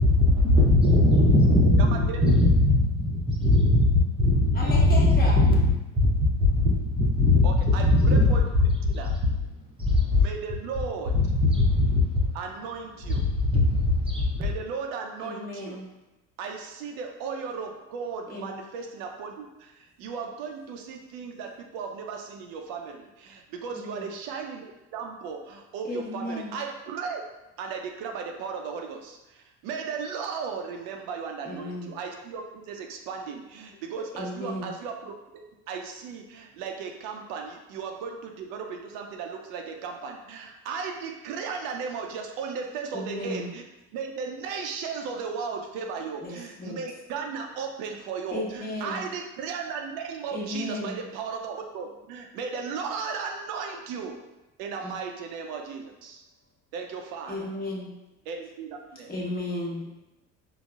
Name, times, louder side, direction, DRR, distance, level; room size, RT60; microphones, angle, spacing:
voice 1, 0.0-8.3 8.9-9.1 9.8-10.2 11.1-12.3 13.1-14.4, left 2 dB, 15° right, -3 dB, 0.6 m, -20 dB
voice 2, 1.8-2.2 7.4-8.5 8.9-9.1 10.2-11.1 12.3-13.3 14.3-15.8 16.4-27.2 27.6-35.1 35.7-43.6 43.9-54.2 54.6-56.2 56.7-57.5 58.3-59.1, right 5 dB, 75° right, 3 dB, 0.5 m, -36 dB
voice 3, 4.5-5.4 15.2-15.9 18.3-18.5 23.7-24.1 25.8-26.5 31.4-31.9 34.1-34.7 42.9-43.5 46.2-46.8 48.3-49.0 50.3-51.0 54.8-54.9 57.3-57.9 59.1-59.9, left 1 dB, 25° left, -4 dB, 1.0 m, -34 dB
3.8 x 2.0 x 2.3 m, 0.97 s
supercardioid pair, 90°, 36 cm